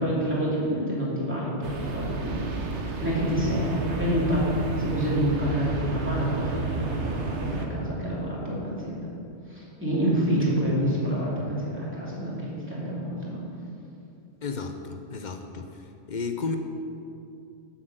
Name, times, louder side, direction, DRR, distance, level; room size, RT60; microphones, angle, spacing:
voice 1, 0.0-9.1 9.5-13.4, equal, 10° right, -7 dB, 2.5 m, -28 dB
sound 1, 1.6-7.7, right 4 dB, 75° right, 1.2 m, -32 dB
voice 2, 14.4-16.6, left 4 dB, 50° left, 6 dB, 0.7 m, -33 dB
7.6 x 6.0 x 7.9 m, 2.6 s
omnidirectional pair, 1.2 m